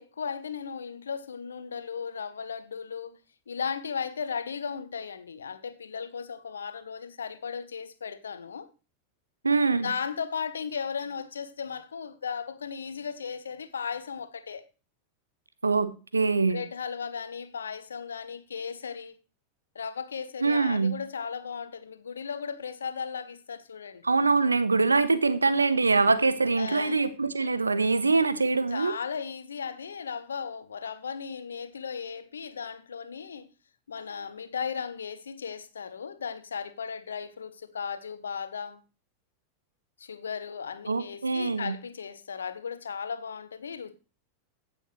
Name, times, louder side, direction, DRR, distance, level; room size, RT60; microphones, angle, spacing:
voice 1, 0.0-3.2 3.5-8.7 9.8-14.6 16.5-19.1 19.7-24.0 26.6-27.1 28.7-33.5 33.9-38.8 40.0-43.9, left 6 dB, 70° left, 1.0 m, -36 dB
voice 2, 9.4-9.9 15.6-16.6 20.4-21.0 24.0-28.9 40.9-41.7, right 4 dB, 80° right, 1.0 m, -24 dB
15.5 x 7.0 x 3.2 m
figure-of-eight pair, 90°, 0 cm